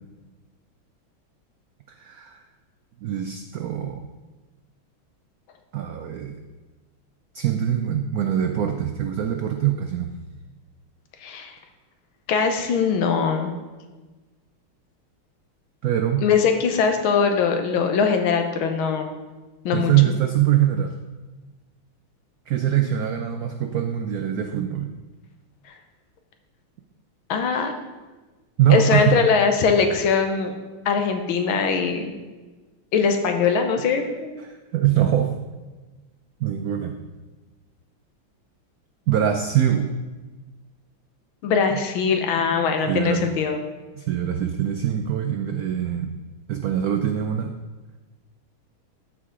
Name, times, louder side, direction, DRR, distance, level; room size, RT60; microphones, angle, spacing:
voice 1, 1.9-2.4 3.0-4.0 5.7-6.3 7.3-10.1 15.8-16.2 19.7-20.9 22.5-24.9 28.6-29.2 34.4-35.3 36.4-36.9 39.1-39.9 42.9-43.3 43.9-46.1 46.5-47.5, right 10 dB, 85° right, 6 dB, 0.8 m, -23 dB
voice 2, 11.2-11.5 12.3-13.5 16.2-19.1 19.6-19.9 27.3-27.7 28.7-30.5 30.8-32.1 32.9-34.3 41.4-43.6, left 6 dB, 80° left, 5 dB, 1.7 m, -21 dB
14.0 x 4.9 x 3.7 m, 1.2 s
omnidirectional pair, 2.2 m